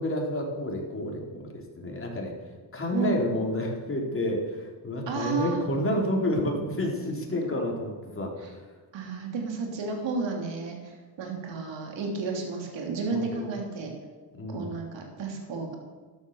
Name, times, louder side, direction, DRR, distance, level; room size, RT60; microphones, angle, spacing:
voice 1, 0.0-2.3 2.7-8.5 13.1-13.5 14.4-14.7, left 1 dB, 30° left, -1 dB, 4.0 m, -30 dB
voice 2, 5.1-5.6 8.9-10.9 11.2-13.9 14.5-15.8, right 4 dB, 75° right, 2 dB, 3.3 m, -32 dB
13.0 x 11.0 x 7.1 m, 1.4 s
cardioid pair, 95°, 44 cm